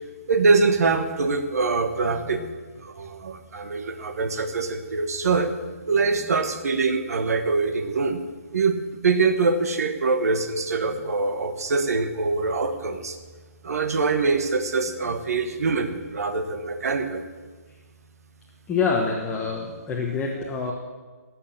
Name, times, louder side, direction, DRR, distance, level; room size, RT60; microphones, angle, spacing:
voice 1, 0.3-2.4 2.8-5.5 5.9-8.2 8.5-13.2 13.6-17.2, right 4 dB, 70° right, 7 dB, 1.5 m, -24 dB
voice 2, 2.1-2.5 6.3-6.4 10.9-11.0 18.7-20.7, left 5 dB, 10° left, -1 dB, 1.2 m, -27 dB
15.0 x 7.8 x 7.3 m, 1.4 s
hypercardioid pair, 160°, 9 cm